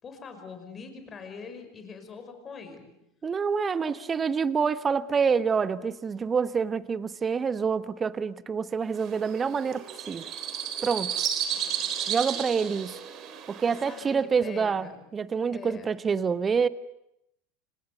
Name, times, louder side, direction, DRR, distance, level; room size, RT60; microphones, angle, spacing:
voice 1, 0.0-2.9 3.8-3.9 11.5-11.8 13.9-14.0 14.4-15.0 15.5-15.9, left 5 dB, 25° left, 5.6 m, -43 dB
voice 2, 3.2-10.2 10.8-11.1 12.1-13.0 13.5-16.7, right 6 dB, 25° right, 1.1 m, -27 dB
sound 1, 8.9-14.1, right 9 dB, 40° right, 3.7 m, -33 dB
30.0 x 26.0 x 6.8 m
figure-of-eight pair, 80°, 0 cm